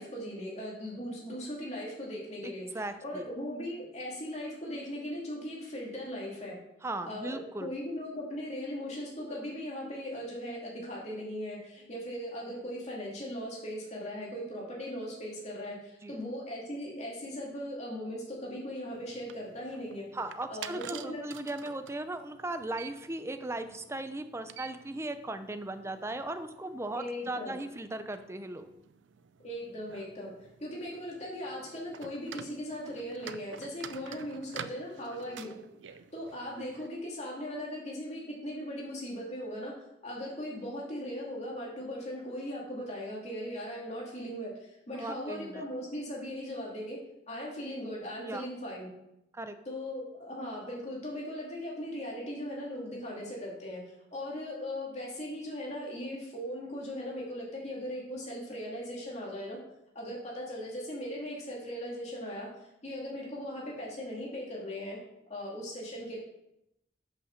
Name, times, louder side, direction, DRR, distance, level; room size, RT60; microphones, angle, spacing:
voice 1, 0.0-2.7 3.0-6.6 7.1-20.1 20.5-21.2 26.9-27.5 29.4-35.6 36.1-39.7 40.0-47.0 47.3-48.9 49.7-53.8 54.1-59.6 59.9-62.5 62.8-65.0 65.3-66.2, equal, 40° left, -4 dB, 2.5 m, -38 dB
voice 2, 2.4-3.3 6.8-7.7 16.0-16.2 20.1-28.7 45.0-45.7 48.2-48.5 49.3-49.6, right 2 dB, 15° right, 9 dB, 0.6 m, -37 dB
sound 1, 18.9-36.9, right 7 dB, 90° right, 0.5 m, -49 dB
7.3 x 5.8 x 6.5 m, 0.84 s
head